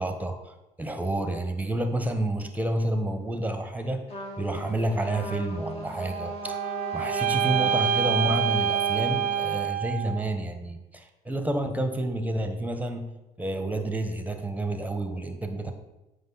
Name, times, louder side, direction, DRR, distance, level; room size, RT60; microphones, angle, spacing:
voice 1, 0.0-4.0 4.4-13.0 13.4-15.7, right 1 dB, 10° right, 6 dB, 1.1 m, -29 dB
Trumpet, 4.1-9.7, equal, 35° left, 1.7 m, -36 dB
sound 1, 6.0-10.3, right 9 dB, 55° right, 0.4 m, -27 dB
8.0 x 5.1 x 4.0 m, 1.0 s
supercardioid pair, 65°, 17 cm